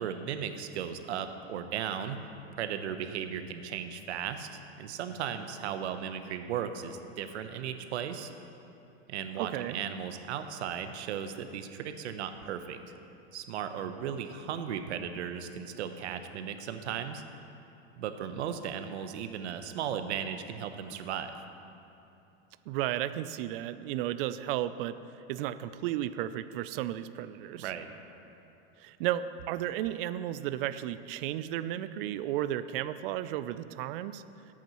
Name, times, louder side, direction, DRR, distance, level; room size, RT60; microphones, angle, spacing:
voice 1, 0.0-2.2 2.5-8.3 9.1-12.8 13.3-17.2 18.0-21.3 27.6-27.9, right 8 dB, 80° right, 8 dB, 0.9 m, -36 dB
voice 2, 9.3-9.8 22.7-25.0 25.3-27.7 28.8-34.2, right 12 dB, 55° right, 13 dB, 0.5 m, -33 dB
18.5 x 8.6 x 3.1 m, 2.9 s
supercardioid pair, 135°, 33 cm